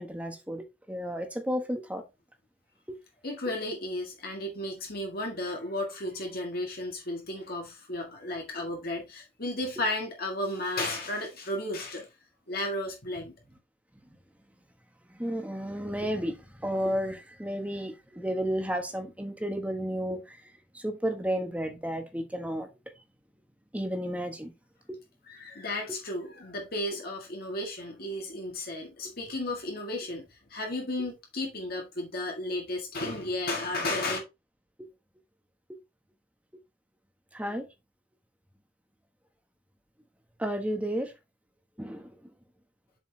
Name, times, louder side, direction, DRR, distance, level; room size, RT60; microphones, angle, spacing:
voice 1, 0.0-2.0 2.9-3.0 15.1-20.4 20.7-22.7 23.7-24.5 24.9-25.0 34.8-34.9 37.3-37.6 40.4-41.1 41.8-42.1, equal, 5° right, 1.2 m, -32 dB
voice 2, 3.2-12.1 12.5-13.3 25.3-34.2, left 1 dB, 50° left, 1.8 m, -34 dB
7.4 x 5.5 x 2.8 m
head